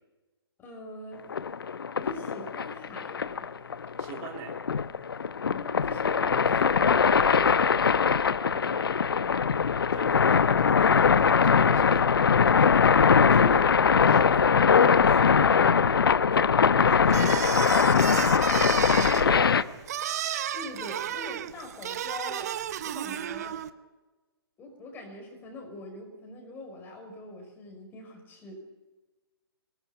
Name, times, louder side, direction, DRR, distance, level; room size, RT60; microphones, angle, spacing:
voice 1, 0.6-1.2 2.0-3.5 5.5-9.0 12.3-17.8 20.5-22.5 22.8-23.6 24.6-28.5, left 1 dB, 15° left, 3 dB, 5.4 m, -43 dB
sound 1, 1.3-19.6, left 6 dB, 60° left, 0.9 m, -22 dB
voice 2, 4.0-4.6 9.9-12.1 18.5-18.8 19.1-19.8, right 7 dB, 25° right, 3 dB, 3.1 m, -42 dB
sound 2, 17.1-23.7, right 10 dB, 40° right, 0.9 m, -32 dB
24.0 x 19.0 x 7.1 m, 1.2 s
figure-of-eight pair, 130°, 14 cm